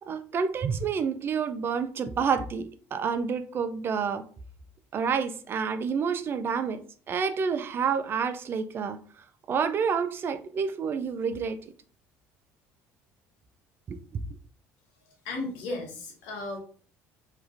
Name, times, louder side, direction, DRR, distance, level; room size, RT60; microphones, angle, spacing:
voice 1, 0.0-4.2 4.9-6.8 7.1-9.0 9.5-11.6 13.9-14.0, right 6 dB, 40° right, 0.4 m, -28 dB
voice 2, 15.2-16.6, left 2 dB, 85° left, 1.0 m, -35 dB
2.9 x 2.4 x 2.5 m
supercardioid pair, 95°, 6 cm